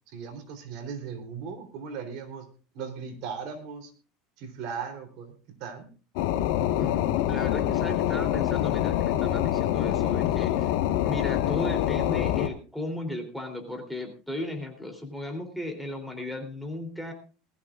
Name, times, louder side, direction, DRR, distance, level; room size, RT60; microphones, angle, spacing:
voice 1, 0.1-2.5 2.7-3.9 4.4-5.9 10.3-10.4, right 6 dB, 55° right, 5 dB, 3.5 m, -38 dB
sound 1, 6.2-12.5, left 12 dB, 70° left, 1.4 m, -25 dB
voice 2, 6.8-10.7 11.0-17.1, left 1 dB, ahead, 3 dB, 3.2 m, -35 dB
21.0 x 14.5 x 2.5 m, 0.36 s
supercardioid pair, 140°, 0 cm